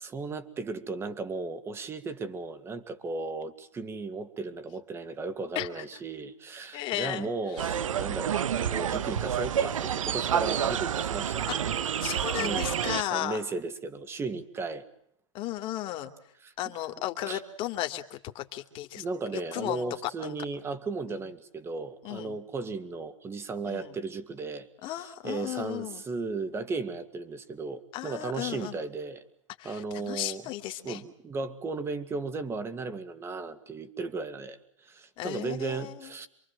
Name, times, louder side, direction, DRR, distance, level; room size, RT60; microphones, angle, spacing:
voice 1, 0.0-11.5 12.3-12.7 13.1-14.9 16.4-16.5 17.3-17.4 19.0-29.2 29.6-30.5 30.8-36.3, right 3 dB, 15° right, 11 dB, 2.3 m, -35 dB
voice 2, 5.5-5.8 6.7-7.3 7.6-7.7 12.0-13.4 15.3-16.1 16.6-19.0 19.3-20.3 21.1-21.2 22.0-22.4 23.6-24.0 24.8-26.0 27.9-28.8 29.6-31.0 35.2-36.1, left 14 dB, 30° left, 7 dB, 2.8 m, -35 dB
sound 1, 7.6-13.0, right 9 dB, 90° right, 1.2 m, -29 dB
28.0 x 24.0 x 7.5 m, 0.71 s
hypercardioid pair, 145°, 16 cm